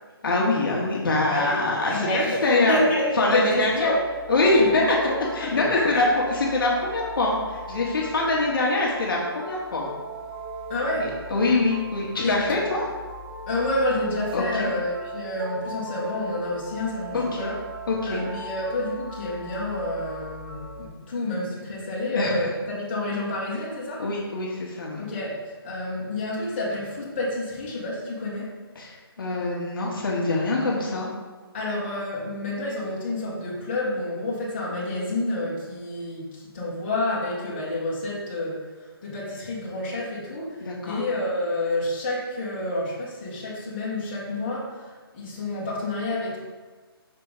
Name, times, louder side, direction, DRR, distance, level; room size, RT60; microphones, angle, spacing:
voice 1, 0.2-2.7 3.2-3.9 4.3-5.0 5.3-6.0 6.5-9.9 11.0-12.8 14.3-14.7 17.1-17.5 17.9-18.2 22.1-22.5 24.0-25.0 28.8-31.1 40.6-41.0, left 2 dB, 60° left, -3 dB, 1.3 m, -24 dB
voice 2, 1.3-1.6 1.9-4.0 4.6-4.7 5.1-5.2 5.4-6.0 10.7-11.2 12.2-12.7 13.5-17.6 18.0-24.0 25.0-28.5 29.3-29.7 31.5-38.7 39.0-46.4, left 1 dB, 25° left, -7 dB, 1.6 m, -29 dB
sound 1, 2.5-20.9, right 1 dB, 5° right, 0.4 m, -39 dB
5.9 x 3.5 x 4.9 m, 1.4 s
hypercardioid pair, 175°, 13 cm